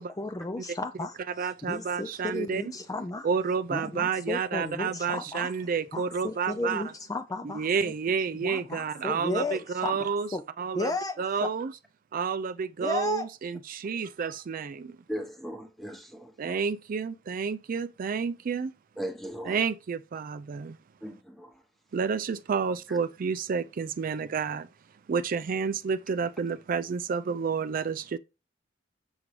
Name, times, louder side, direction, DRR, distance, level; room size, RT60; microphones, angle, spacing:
voice 1, 0.0-3.3 3.7-5.5 5.9-7.9 8.4-10.4 10.7-11.5 12.8-13.3, left 2 dB, 20° left, 0.4 m, -34 dB
voice 2, 1.4-2.6 3.2-6.8 7.4-10.3 10.6-10.9 11.2-11.7 12.1-15.0 16.4-18.7 19.5-20.8 21.9-24.7 25.1-28.2, right 6 dB, 45° right, 0.4 m, -30 dB
voice 3, 15.1-16.3 19.0-19.6 21.0-21.6 22.9-23.0, equal, ahead, 1.0 m, -38 dB
7.1 x 5.3 x 3.2 m
head